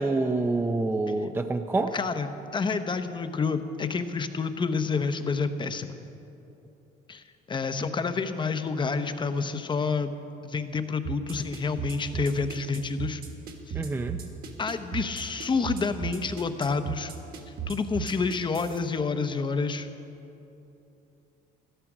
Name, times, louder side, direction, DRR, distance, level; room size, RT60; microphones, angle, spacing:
voice 1, 0.0-1.9 13.7-14.2, right 2 dB, 15° right, 7 dB, 0.5 m, -27 dB
voice 2, 1.9-6.0 7.1-10.1 10.4-13.2 13.7-13.8 14.6-17.1 17.7-19.9, left 4 dB, 30° left, 9 dB, 0.8 m, -29 dB
sound 1, 11.0-18.8, right 9 dB, 60° right, 1.7 m, -36 dB
13.5 x 12.5 x 6.1 m, 2.9 s
cardioid pair, 110°, 17 cm